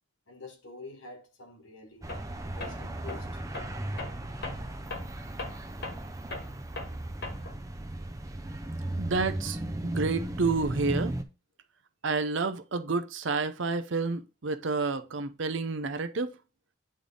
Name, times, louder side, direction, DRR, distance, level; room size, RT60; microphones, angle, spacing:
voice 1, 0.3-2.1 2.4-3.4, left 3 dB, 65° left, 1.3 m, -47 dB
sound 1, 2.0-11.2, right 1 dB, 15° right, 0.5 m, -36 dB
Tools, 2.1-2.3 2.6-7.7, left 2 dB, 50° left, 1.4 m, -40 dB
voice 2, 9.0-11.1 12.0-16.3, right 4 dB, 60° right, 0.7 m, -30 dB
8.7 x 3.5 x 3.8 m
head